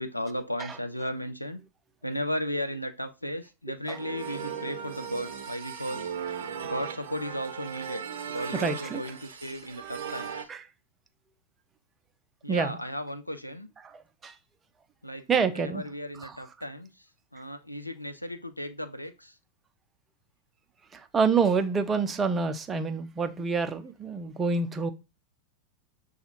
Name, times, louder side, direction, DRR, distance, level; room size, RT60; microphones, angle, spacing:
voice 1, 0.0-1.6 2.0-6.2 6.6-10.5 12.4-13.7 15.0-19.4, equal, 85° left, 0.4 m, -35 dB
sound 1, 3.9-10.4, right 7 dB, 60° right, 0.6 m, -37 dB
voice 2, 8.5-9.0 10.5-10.6 12.5-12.8 14.2-14.3 15.3-15.8 20.9-24.9, right 5 dB, 20° right, 0.5 m, -27 dB
6.6 x 2.4 x 2.9 m
figure-of-eight pair, 90°, 0 cm